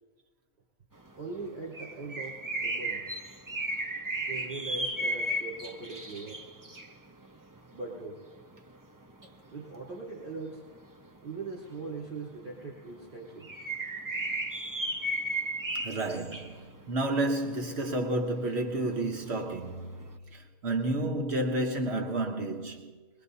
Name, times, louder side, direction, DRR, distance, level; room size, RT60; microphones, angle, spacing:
sound 1, 1.0-20.1, right 1 dB, 20° right, 0.7 m, -35 dB
voice 1, 1.1-3.1 4.2-6.4 7.7-8.2 9.5-10.7 11.2-13.5, right 3 dB, 50° right, 4.0 m, -40 dB
voice 2, 15.7-23.0, right 2 dB, 70° right, 1.3 m, -31 dB
23.0 x 22.0 x 2.7 m
omnidirectional pair, 1.1 m